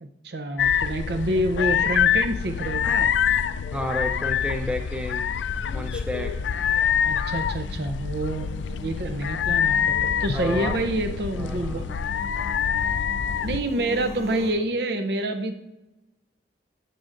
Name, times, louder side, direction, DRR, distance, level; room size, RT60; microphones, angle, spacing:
voice 1, 0.0-3.1 7.0-8.5 8.8-11.8 13.4-15.6, right 1 dB, 65° right, 7 dB, 0.6 m, -27 dB
sound 1, 0.6-13.6, left 8 dB, 90° left, 0.3 m, -25 dB
sound 2, 1.9-14.5, equal, 40° right, 1.3 m, -42 dB
voice 2, 3.7-5.3 5.7-6.3 10.3-10.8 11.4-11.9, left 1 dB, 5° right, 4 dB, 0.5 m, -31 dB
13.5 x 7.6 x 2.5 m, 1.0 s
head